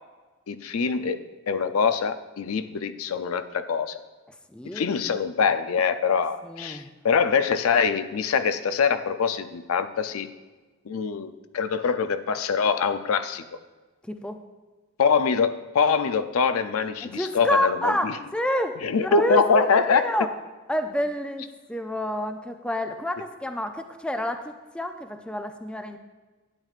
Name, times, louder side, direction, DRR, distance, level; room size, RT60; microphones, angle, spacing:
voice 1, 0.5-1.2 1.5-4.0 4.7-10.3 10.9-13.4 15.0-18.1 18.8-20.1, left 5 dB, 85° left, 12 dB, 0.5 m, -24 dB
voice 2, 4.5-4.9 6.4-6.9 14.0-14.4 17.0-20.3 20.7-26.0, left 1 dB, 5° left, 7 dB, 0.4 m, -29 dB
12.0 x 8.8 x 2.5 m, 1.3 s
head